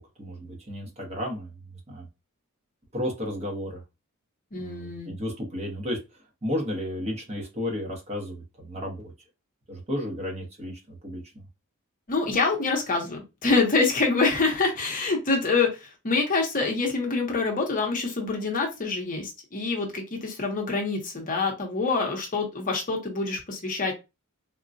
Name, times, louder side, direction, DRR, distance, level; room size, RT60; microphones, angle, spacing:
voice 1, 0.0-1.5 1.9-2.0 2.9-3.8 4.5-6.0 6.4-9.1 9.7-11.2, left 1 dB, 30° right, -1 dB, 1.0 m, -33 dB
voice 2, 4.5-5.1 12.1-23.9, left 3 dB, 40° left, 1 dB, 0.8 m, -26 dB
3.7 x 2.2 x 2.6 m, 0.26 s
head